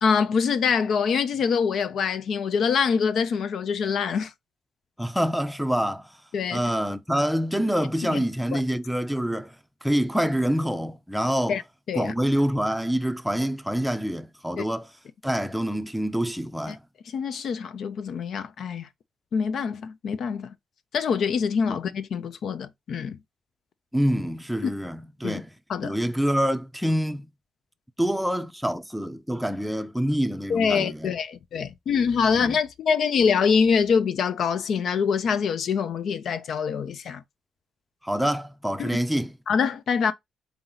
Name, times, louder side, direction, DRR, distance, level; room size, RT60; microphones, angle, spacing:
voice 1, 0.0-4.3 6.3-6.6 8.0-8.2 8.5-8.6 11.5-11.6 11.9-12.1 14.6-14.7 16.7-16.8 17.1-18.9 19.3-20.5 20.9-23.2 25.2-25.4 25.7-25.9 30.5-37.2 38.8-38.9 39.5-40.1, left 6 dB, 60° left, 0.5 m, -25 dB
voice 2, 5.0-6.1 6.5-9.5 9.8-11.6 11.9-14.9 15.2-16.8 23.9-25.5 25.8-27.3 28.0-31.1 32.4-32.6 38.0-39.3, equal, ahead, 0.5 m, -26 dB
3.9 x 2.8 x 3.9 m
cardioid pair, 90°, 0 cm